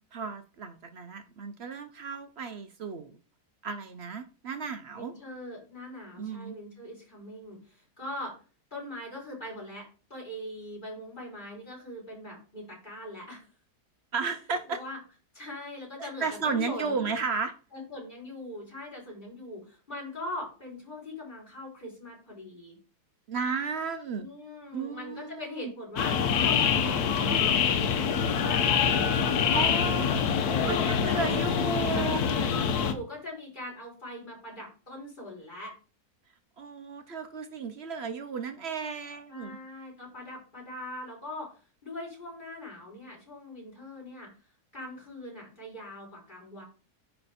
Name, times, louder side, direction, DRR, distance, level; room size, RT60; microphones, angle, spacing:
voice 1, 0.0-3.1 3.6-5.1 6.2-6.6 14.1-14.8 16.0-17.5 23.3-24.3 24.7-25.7 29.5-30.2 30.7-32.2 36.6-39.6, right 5 dB, 60° right, 0.7 m, -34 dB
voice 2, 4.9-8.3 8.7-13.5 14.7-15.0 15.3-17.1 17.7-22.8 24.2-30.9 31.9-35.7 39.3-41.5 41.8-44.3 44.7-46.6, left 1 dB, 30° left, 3.6 m, -41 dB
sound 1, 26.0-32.9, left 7 dB, 75° left, 1.3 m, -25 dB
9.9 x 3.3 x 4.1 m
omnidirectional pair, 1.7 m